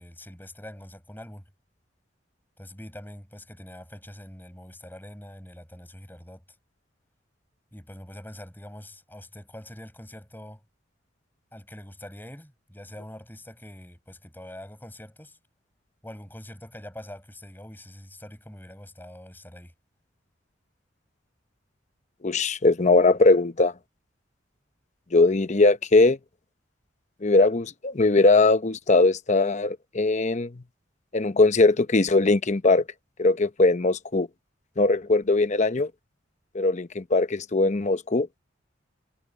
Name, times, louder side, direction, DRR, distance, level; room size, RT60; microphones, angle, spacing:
voice 1, 0.0-1.5 2.6-6.4 7.7-10.6 11.5-15.4 16.0-19.7, left 1 dB, 10° left, 7.6 m, -44 dB
voice 2, 22.2-23.7 25.1-26.2 27.2-30.6 31.1-32.8 33.2-34.3 34.8-35.9 36.5-38.3, left 3 dB, 40° left, 0.8 m, -20 dB
head